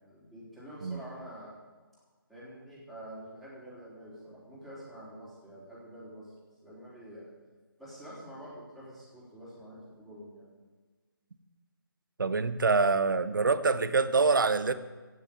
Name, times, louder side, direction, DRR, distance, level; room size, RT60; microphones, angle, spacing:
voice 1, 0.0-1.5 2.3-6.3 6.6-7.3 7.8-10.5, right 1 dB, ahead, -9 dB, 3.7 m, -47 dB
voice 2, 12.2-14.7, right 4 dB, 60° right, 13 dB, 1.0 m, -25 dB
15.5 x 6.4 x 8.8 m, 1.3 s
figure-of-eight pair, 155°, 12 cm